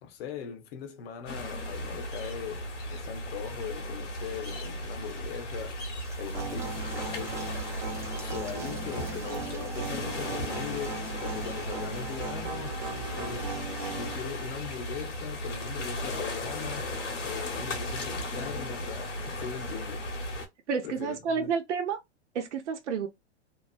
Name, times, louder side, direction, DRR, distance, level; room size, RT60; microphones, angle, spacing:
voice 1, 0.0-2.6 2.9-5.8 6.2-7.4 8.1-12.7 13.1-13.5 13.9-16.9 17.2-20.1 20.8-21.6, left 8 dB, 55° left, 1.0 m, -40 dB
sound 1, 1.3-20.5, left 1 dB, 85° left, 1.4 m, -36 dB
sound 2, 6.0-12.3, right 3 dB, 10° right, 0.5 m, -51 dB
sound 3, 6.3-14.2, right 3 dB, 40° right, 0.9 m, -38 dB
voice 2, 20.7-22.0 22.3-23.1, right 6 dB, 75° right, 0.8 m, -30 dB
2.9 x 2.4 x 2.5 m
hypercardioid pair, 125°, 35 cm